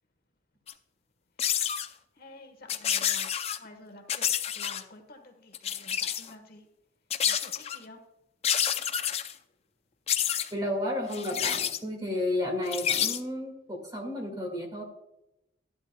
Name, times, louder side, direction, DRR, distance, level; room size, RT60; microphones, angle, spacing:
sound 1, 0.7-0.8 1.4-1.9 2.7-3.6 4.1-4.8 5.5-6.3 7.1-7.8 8.4-9.3 10.1-10.5 11.1-11.8 12.7-13.2, left 9 dB, 30° left, 0.4 m, -28 dB
voice 1, 2.2-3.3 3.6-6.6 7.2-8.0, left 2 dB, 50° left, 5 dB, 1.2 m, -50 dB
voice 2, 10.5-13.5 13.9-14.8, left 1 dB, 20° right, 1 dB, 1.8 m, -32 dB
12.0 x 11.5 x 2.2 m, 0.87 s
head